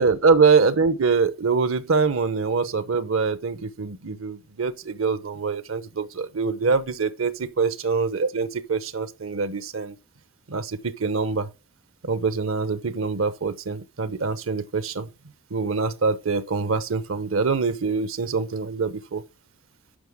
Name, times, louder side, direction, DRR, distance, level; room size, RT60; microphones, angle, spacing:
voice 1, 0.0-10.0 10.5-11.5 12.0-15.1 15.5-19.2, right 4 dB, 70° right, 0.9 m, -24 dB
9.9 x 5.9 x 3.6 m
head